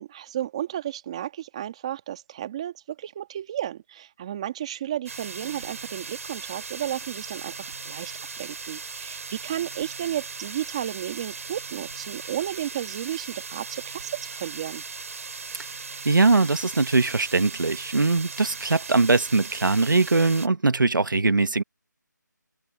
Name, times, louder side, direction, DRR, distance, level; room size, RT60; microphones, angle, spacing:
voice 1, 0.0-2.7 3.0-14.8, right 11 dB, 20° right, 1.9 m, -33 dB
sound 1, 5.1-20.5, right 4 dB, 45° right, 3.8 m, -38 dB
voice 2, 16.0-21.6, right 3 dB, 85° right, 1.5 m, -21 dB
figure-of-eight pair, 170°, 10 cm